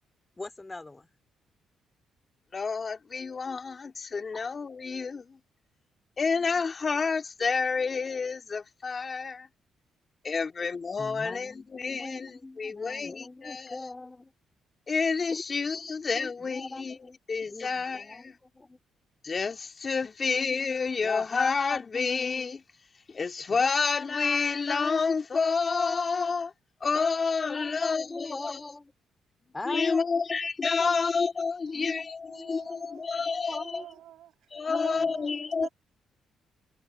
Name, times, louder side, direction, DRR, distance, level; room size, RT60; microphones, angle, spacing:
voice 1, 0.4-1.1 4.3-4.4 11.0-14.3 15.3-15.4 15.7-17.2 17.4-18.8 27.5-28.9 29.5-30.1 30.6-30.9 31.8-32.0 32.4-32.5 33.5-33.9, left 2 dB, 20° left, 3.7 m, -41 dB
voice 2, 2.5-5.2 6.2-9.5 10.3-13.8 14.9-18.3 19.2-22.6 23.1-26.5 26.8-28.6 29.7-33.8 34.5-35.7, left 5 dB, 35° left, 2.6 m, -29 dB
voice 3, 31.6-35.7, right 12 dB, 80° right, 5.8 m, -48 dB
cardioid pair, 90°, 0 cm